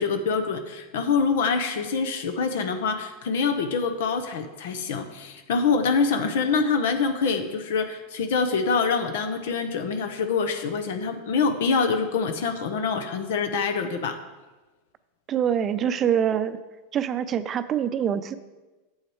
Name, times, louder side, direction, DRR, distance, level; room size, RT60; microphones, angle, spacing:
voice 1, 0.0-14.2, left 5 dB, 70° left, 8 dB, 0.8 m, -25 dB
voice 2, 15.3-16.6 16.9-18.3, right 9 dB, 35° right, 12 dB, 0.6 m, -25 dB
9.1 x 7.3 x 4.7 m, 1.2 s
hypercardioid pair, 105°, 0 cm